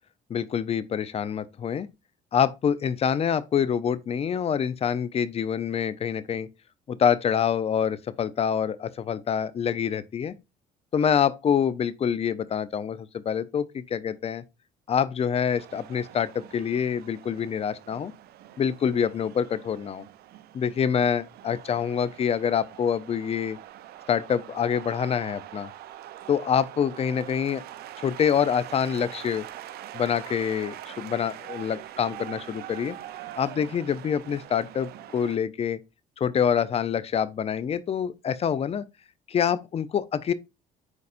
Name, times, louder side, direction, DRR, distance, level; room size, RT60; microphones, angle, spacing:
voice 1, 0.3-1.9 2.3-6.5 6.9-10.3 10.9-14.4 14.9-18.1 18.6-20.0 20.5-23.6 24.1-25.7 26.3-27.6 28.0-29.5 29.9-33.0 33.4-35.8 36.2-38.8 39.3-40.3, left 8 dB, 35° left, 0.5 m, -26 dB
sound 1, 15.6-35.4, right 12 dB, 70° right, 0.6 m, -43 dB
9.6 x 4.0 x 2.5 m
cardioid pair, 110°, 17 cm